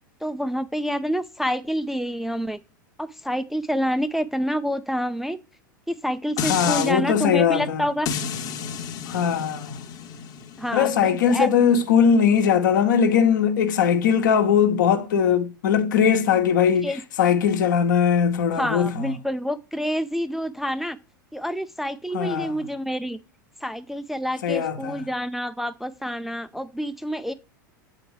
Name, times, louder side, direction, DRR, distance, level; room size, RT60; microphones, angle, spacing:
voice 1, 0.2-2.6 3.0-5.4 5.9-8.1 10.6-11.5 16.8-17.0 18.6-21.0 21.3-23.2 23.6-27.3, equal, ahead, 0.3 m, -27 dB
voice 2, 6.4-7.9 9.1-9.8 10.7-19.1 22.1-22.5 24.4-25.0, left 7 dB, 65° left, 0.9 m, -20 dB
sound 1, 6.4-6.9 8.1-13.2 13.7-13.8, left 7 dB, 35° left, 0.9 m, -33 dB
7.8 x 4.3 x 3.2 m
figure-of-eight pair, 90°, 11 cm